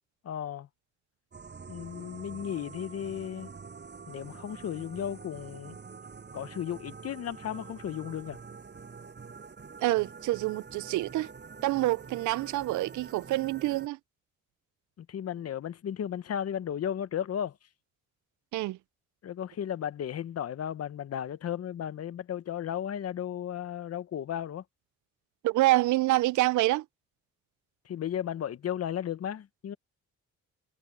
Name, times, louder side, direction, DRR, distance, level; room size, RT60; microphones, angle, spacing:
voice 1, 0.2-0.7 1.7-3.5 4.1-5.8 6.3-8.4 15.0-17.6 19.2-24.6 27.8-29.8, left 9 dB, 55° left, 1.1 m, -35 dB
sound 1, 1.3-13.9, right 5 dB, 35° right, 7.5 m, -46 dB
voice 2, 9.8-11.3 11.6-14.0 18.5-18.8 25.4-26.8, right 18 dB, 75° right, 0.5 m, -27 dB
cardioid pair, 90°, 30 cm